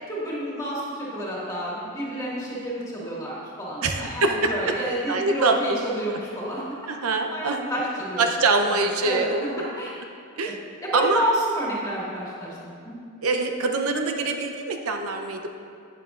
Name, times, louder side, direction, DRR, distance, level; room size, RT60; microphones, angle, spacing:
voice 1, 0.1-6.6 7.3-8.2 8.5-9.3 9.6-9.9 10.5-10.6 10.8-12.6 12.8-12.9, right 1 dB, 15° left, -6 dB, 1.9 m, -29 dB
voice 2, 3.8-4.7 5.1-5.8 6.1-6.2 6.9-7.6 8.2-9.7 10.3-10.6 10.9-11.2 13.2-15.5, right 3 dB, 80° right, 4 dB, 0.7 m, -24 dB
11.0 x 9.2 x 2.5 m, 2.4 s
head